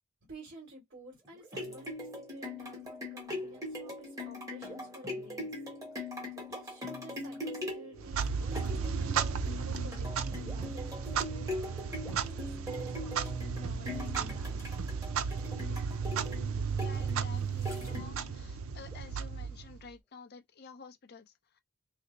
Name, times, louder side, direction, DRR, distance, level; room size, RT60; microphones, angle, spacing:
voice 1, 0.3-5.5 6.4-11.5 12.0-14.6, right 1 dB, 55° right, 1.9 m, -52 dB
sound 1, 1.3-18.4 18.9-19.0, left 1 dB, 15° right, 1.1 m, -41 dB
Clock, 8.0-19.9, right 6 dB, 75° right, 0.5 m, -34 dB
voice 2, 16.7-21.2, left 4 dB, 50° left, 0.6 m, -51 dB
3.3 x 2.0 x 3.9 m
head